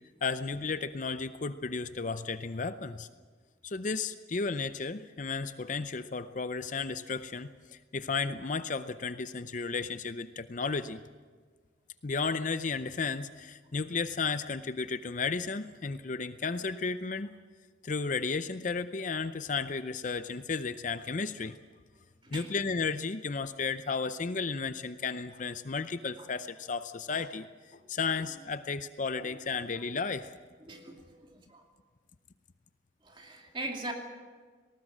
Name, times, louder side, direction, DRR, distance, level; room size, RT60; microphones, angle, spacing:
voice 1, 0.2-3.1 3.6-11.0 12.0-17.4 17.8-21.6 22.3-30.3, left 4 dB, 40° left, 12 dB, 0.6 m, -33 dB
voice 2, 30.6-31.6 33.0-33.9, right 2 dB, 25° right, 2 dB, 2.6 m, -41 dB
19.0 x 18.5 x 7.4 m, 1.5 s
head